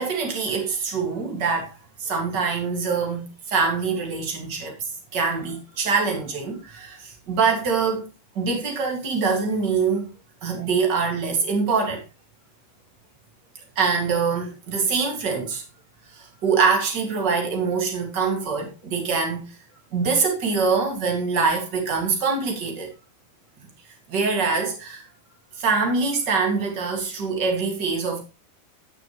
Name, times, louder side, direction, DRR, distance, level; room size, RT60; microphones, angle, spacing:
voice 1, 0.0-1.7 2.0-8.0 8.3-10.1 10.4-12.0 13.7-15.6 16.1-19.5 19.9-22.9 24.1-25.0 25.6-28.2, right 5 dB, 45° right, 1.4 m, -24 dB
16.0 x 6.5 x 3.1 m
omnidirectional pair, 5.5 m